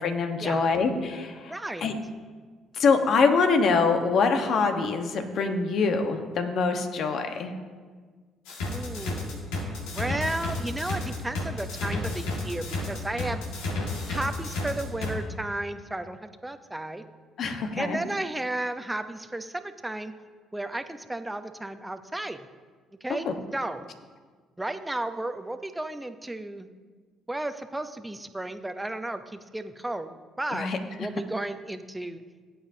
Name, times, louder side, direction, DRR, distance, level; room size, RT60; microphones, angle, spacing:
voice 1, 0.0-1.5 1.8-2.0 2.8-7.5 17.4-18.0 23.2-23.3 30.5-30.8, left 4 dB, 60° left, 6 dB, 1.2 m, -24 dB
voice 2, 1.5-1.9 8.6-13.4 14.1-17.0 17.8-20.1 20.5-22.4 23.0-23.3 23.5-23.9 24.6-26.7 27.3-30.7 31.0-32.2, right 1 dB, 10° right, 9 dB, 0.8 m, -33 dB
sound 1, 8.5-15.1, left 3 dB, 80° left, 1.9 m, -31 dB
17.5 x 8.8 x 2.8 m, 1.5 s
hypercardioid pair, 60°, 0 cm